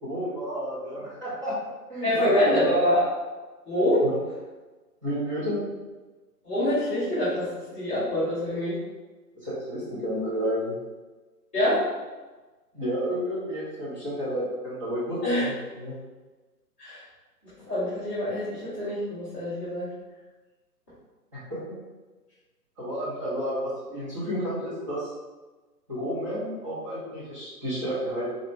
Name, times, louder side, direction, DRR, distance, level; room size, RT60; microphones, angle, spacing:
voice 1, 0.0-1.6 1.9-2.9 4.0-4.2 5.0-5.7 9.3-10.7 12.7-15.9 21.3-21.8 22.8-25.1 25.9-28.3, equal, 20° right, -10 dB, 1.1 m, -31 dB
voice 2, 2.0-3.0 3.6-4.1 6.4-7.5 7.7-8.8 11.5-11.8 15.2-15.4 16.8-17.0 17.4-19.9, left 1 dB, 5° left, -23 dB, 0.7 m, -25 dB
4.0 x 2.8 x 3.5 m, 1.2 s
figure-of-eight pair, 150°, 48 cm